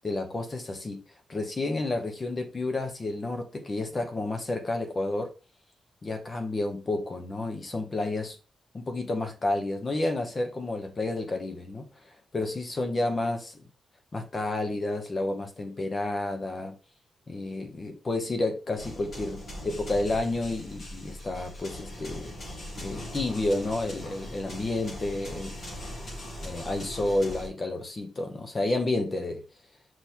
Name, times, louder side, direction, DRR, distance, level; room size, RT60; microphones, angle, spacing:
voice 1, 0.0-1.0 1.3-5.3 6.0-8.4 8.7-13.7 14.1-16.7 17.3-22.3 22.8-25.5 26.4-29.4, left 2 dB, 25° left, 0.9 m, -30 dB
sound 1, 18.8-27.5, left 1 dB, 40° left, 3.5 m, -40 dB
6.1 x 3.5 x 4.5 m
wide cardioid pair, 160°, 0 cm